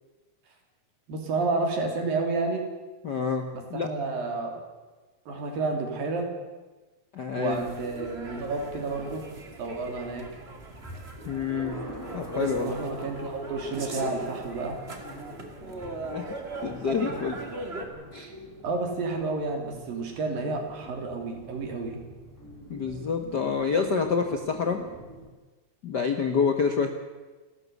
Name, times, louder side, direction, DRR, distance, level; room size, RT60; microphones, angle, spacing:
voice 1, 1.1-2.7 3.5-4.6 5.3-6.3 7.4-9.3 9.6-10.3 12.6-14.8 18.6-22.0, right 3 dB, 85° right, 3 dB, 4.9 m, -30 dB
voice 2, 3.0-3.9 7.1-7.6 11.2-11.8 12.1-12.8 16.0-17.4 18.1-18.3 22.7-24.8 25.8-26.9, left 5 dB, 80° left, 6 dB, 0.9 m, -28 dB
sound 1, 7.5-17.8, right 2 dB, 25° right, 1.7 m, -39 dB
sound 2, 8.1-25.3, right 1 dB, 5° left, 3.0 m, -45 dB
29.0 x 12.5 x 8.2 m, 1.3 s
omnidirectional pair, 4.0 m